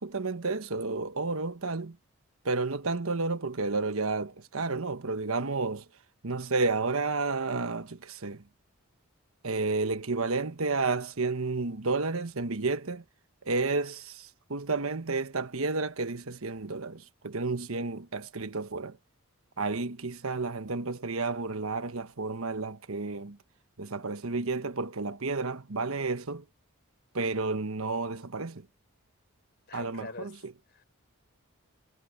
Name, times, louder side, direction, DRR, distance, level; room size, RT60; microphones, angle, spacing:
voice 1, 0.0-2.0 2.4-5.9 6.2-8.4 9.4-13.0 13.4-19.0 19.6-23.4 23.8-26.4 27.1-28.7 29.7-30.5, right 3 dB, 75° right, 1.2 m, -31 dB
voice 2, 29.7-30.3 30.7-30.8, left 3 dB, 50° left, 4.4 m, -43 dB
head